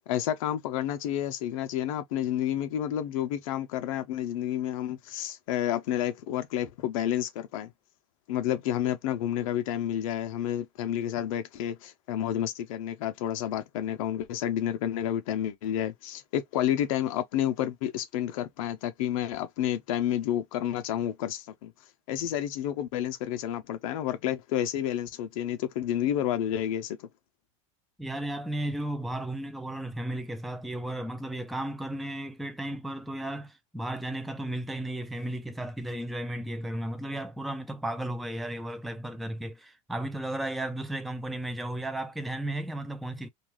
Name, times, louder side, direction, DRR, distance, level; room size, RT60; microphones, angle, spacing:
voice 1, 0.1-7.7 8.3-21.7 22.1-27.1, left 11 dB, 75° left, 0.5 m, -30 dB
voice 2, 28.0-43.3, right 1 dB, ahead, 0.3 m, -34 dB
2.3 x 2.3 x 3.1 m
supercardioid pair, 110°, 18 cm